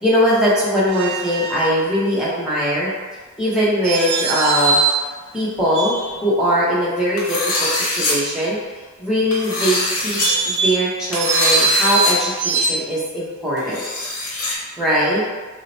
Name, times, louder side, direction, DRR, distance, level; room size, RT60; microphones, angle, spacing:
voice 1, 0.0-2.9 3.4-4.8 5.3-8.6 9.0-13.9 14.8-15.2, equal, 5° right, -8 dB, 0.7 m, -20 dB
sound 1, 0.9-1.8 3.8-5.1 5.7-6.4 10.0-12.7, right 4 dB, 55° right, 0.3 m, -22 dB
sound 2, 7.2-8.1 9.3-10.3 11.1-12.1 12.4-12.5 13.6-14.5, left 2 dB, 80° left, 0.9 m, -23 dB
2.8 x 2.1 x 3.9 m, 1.4 s
head